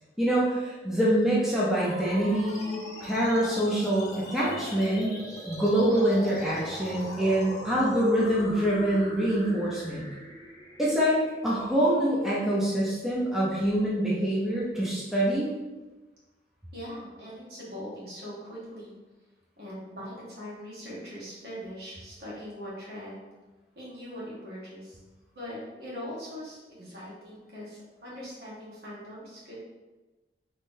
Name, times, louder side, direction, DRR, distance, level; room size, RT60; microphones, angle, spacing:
voice 1, 0.2-5.2 5.5-10.0 10.8-15.5, right 1 dB, 5° right, -7 dB, 0.6 m, -25 dB
sound 1, 1.8-12.7, equal, 20° left, 0.9 m, -41 dB
voice 2, 16.7-19.0 19.6-23.3 23.7-25.0 25.3-29.6, equal, 60° right, -7 dB, 1.4 m, -41 dB
3.6 x 3.2 x 2.6 m, 1.2 s
head